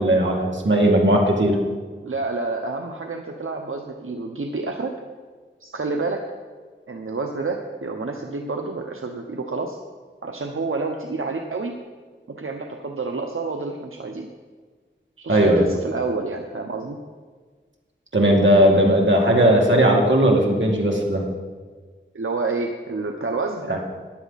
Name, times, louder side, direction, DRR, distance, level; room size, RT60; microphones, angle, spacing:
voice 1, 0.0-1.6 15.3-15.6 18.1-21.3 23.7-23.8, right 1 dB, 65° right, 0 dB, 2.2 m, -17 dB
voice 2, 2.0-4.9 5.6-6.2 6.9-9.8 10.2-11.7 12.3-14.3 15.2-17.0 22.1-23.6, right 3 dB, 85° right, 3 dB, 0.8 m, -28 dB
14.5 x 10.5 x 4.1 m, 1.5 s
wide cardioid pair, 50°, 21 cm